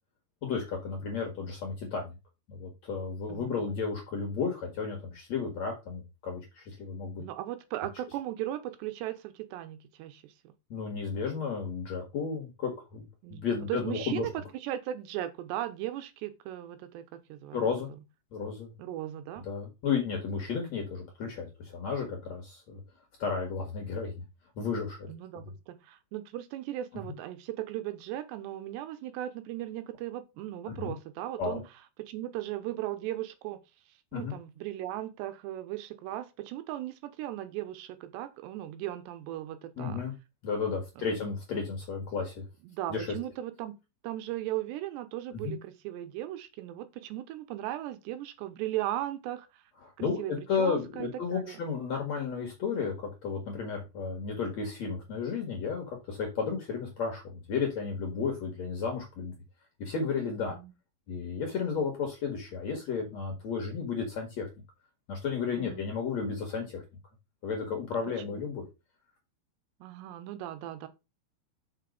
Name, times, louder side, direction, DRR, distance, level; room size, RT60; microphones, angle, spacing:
voice 1, 0.4-2.1 2.5-7.2 10.7-13.0 13.3-14.2 17.5-17.9 18.3-18.7 19.5-22.8 23.2-24.2 24.6-25.1 30.8-30.9 31.4-31.6 34.1-34.3 39.8-40.1 40.4-42.4 42.9-43.1 45.3-45.6 49.8-52.9 53.2-59.3 59.8-60.6 61.1-64.5 65.1-66.8 67.4-68.6, left 5 dB, 55° left, 2.0 m, -33 dB
voice 2, 3.3-3.6 7.2-10.5 13.2-18.0 18.8-19.4 25.1-31.6 32.0-33.6 34.1-40.0 41.0-41.3 42.6-43.8 44.0-49.6 50.0-51.6 56.5-56.6 60.6-60.7 61.6-61.9 65.6-65.8 68.3-68.4 69.8-70.9, right 13 dB, 85° right, 2.9 m, -37 dB
5.8 x 5.7 x 5.3 m
omnidirectional pair, 5.1 m